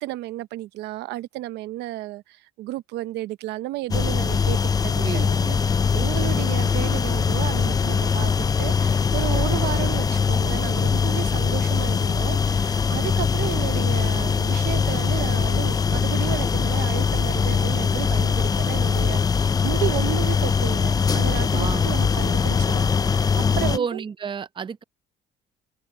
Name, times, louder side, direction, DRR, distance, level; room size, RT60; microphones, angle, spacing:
voice 1, 0.0-5.4 5.9-24.0, right 17 dB, 85° right, 0.8 m, -33 dB
sound 1, 3.9-23.8, left 6 dB, 20° left, 0.5 m, -22 dB
voice 2, 5.0-5.7 21.5-21.9 23.7-24.8, right 6 dB, 30° right, 0.7 m, -31 dB
open air
cardioid pair, 110°, 17 cm